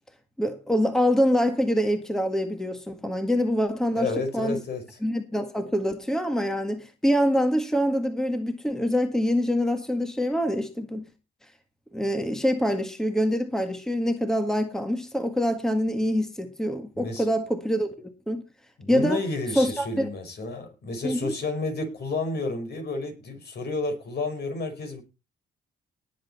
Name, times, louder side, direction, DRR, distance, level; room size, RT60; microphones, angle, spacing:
voice 1, 0.4-4.6 5.0-11.1 11.9-18.4 18.9-19.2 19.6-20.1 21.0-21.4, equal, 5° left, 1.8 m, -25 dB
voice 2, 3.9-5.0 16.9-17.3 18.8-25.0, left 3 dB, 55° left, 5.3 m, -31 dB
19.0 x 7.8 x 4.3 m
cardioid pair, 90°, 20 cm